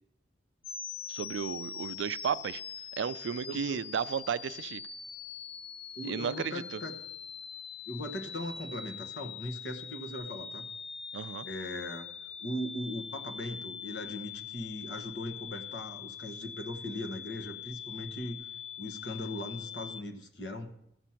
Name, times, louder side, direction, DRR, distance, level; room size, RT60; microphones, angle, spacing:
sound 1, 0.6-20.0, left 8 dB, 30° left, 0.3 m, -43 dB
voice 1, 1.1-2.6 3.0-4.8 6.1-6.8 11.1-11.5, right 7 dB, 75° right, 0.3 m, -34 dB
voice 2, 3.5-3.8 5.9-6.9 7.8-10.7 11.4-12.1 12.4-18.4 18.8-20.7, left 1 dB, 70° left, 1.2 m, -39 dB
14.0 x 6.1 x 5.7 m
head